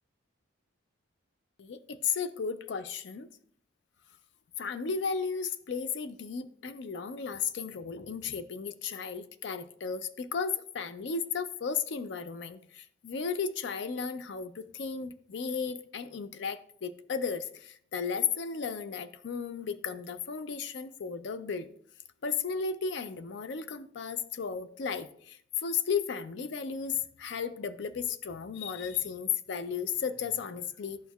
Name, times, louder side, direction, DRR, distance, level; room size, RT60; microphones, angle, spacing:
voice 1, 1.6-3.3 4.6-21.7 22.2-31.0, left 6 dB, 55° left, 0.4 m, -34 dB
12.0 x 4.5 x 2.3 m
head